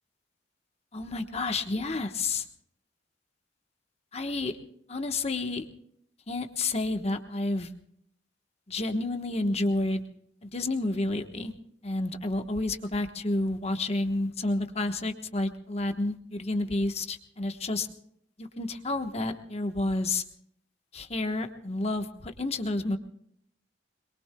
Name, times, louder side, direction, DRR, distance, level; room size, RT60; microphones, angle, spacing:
voice 1, 0.9-2.5 4.1-4.5 4.9-5.7 6.3-7.7 8.7-10.0 10.4-11.5 11.8-17.9 18.4-20.2 20.9-23.0, left 2 dB, 35° left, 6 dB, 1.1 m, -30 dB
26.5 x 22.5 x 2.3 m, 0.69 s
head